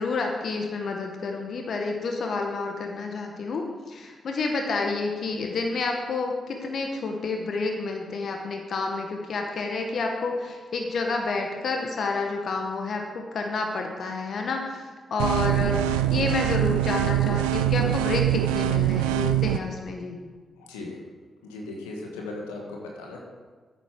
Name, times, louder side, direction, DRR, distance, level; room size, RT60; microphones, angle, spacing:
voice 1, 0.0-20.2, left 3 dB, 65° left, 2 dB, 1.3 m, -29 dB
sound 1, 15.2-19.6, right 13 dB, 90° right, 0.4 m, -23 dB
voice 2, 20.7-21.0 21.4-23.2, left 2 dB, 90° left, -1 dB, 1.5 m, -37 dB
9.1 x 7.9 x 6.0 m, 1.5 s
hypercardioid pair, 40°, 0 cm